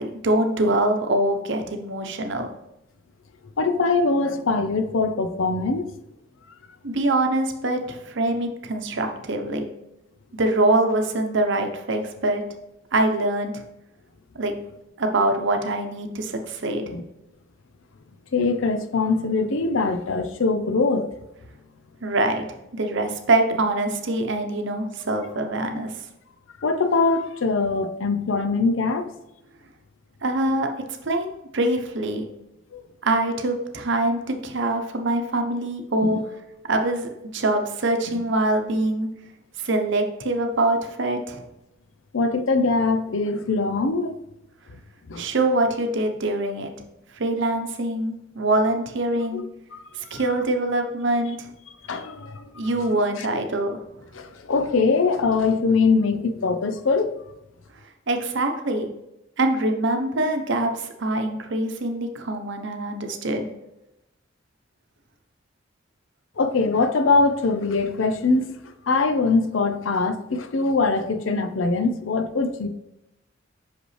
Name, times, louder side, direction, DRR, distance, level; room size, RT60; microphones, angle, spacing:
voice 1, 0.0-2.5 6.8-9.7 10.3-12.4 12.9-13.6 14.3-14.5 15.0-17.0 22.0-22.4 22.7-25.9 30.2-31.3 31.5-32.3 33.0-36.2 36.7-39.1 39.6-41.4 45.2-46.7 47.2-49.4 50.1-51.5 52.5-53.8 58.1-58.9 59.4-63.5, right 2 dB, 65° right, 0.9 m, -24 dB
voice 2, 3.6-5.9 16.9-17.0 18.3-21.1 26.6-29.1 32.7-32.8 36.0-36.2 38.1-38.2 42.1-44.1 45.1-45.3 49.3-49.4 49.7-49.8 50.1-50.2 51.9-52.5 53.2-53.3 54.1-57.1 66.4-68.6 68.9-72.7, left 3 dB, 75° left, 0.6 m, -22 dB
6.0 x 5.2 x 3.2 m
head